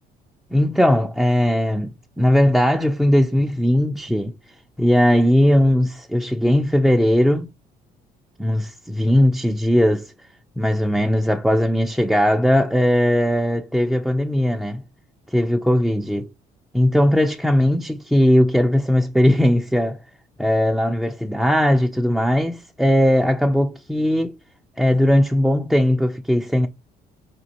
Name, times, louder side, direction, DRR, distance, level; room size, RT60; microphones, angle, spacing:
voice 1, 0.5-4.3 4.8-7.5 8.4-10.1 10.6-14.8 15.3-16.3 16.7-20.0 20.4-24.4 24.8-26.7, equal, ahead, 0.4 m, -18 dB
5.1 x 2.3 x 2.8 m
cardioid pair, 110°, 17 cm